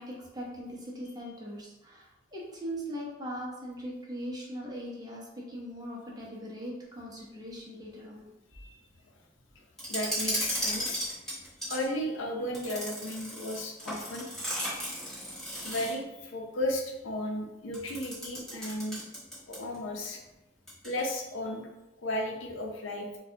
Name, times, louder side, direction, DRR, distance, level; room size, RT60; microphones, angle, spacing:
voice 1, 0.0-8.3, equal, 20° right, -4 dB, 0.7 m, -40 dB
sound 1, 9.8-11.9 12.5-16.1 17.7-19.8 20.0-20.1 20.7-21.1, equal, ahead, 1.0 m, -35 dB
voice 2, 9.9-11.1 11.7-14.3 15.6-19.0 19.5-20.2 20.8-21.7 22.0-23.1, left 1 dB, 90° left, 2 dB, 0.6 m, -34 dB
4.1 x 2.3 x 2.7 m, 0.98 s
head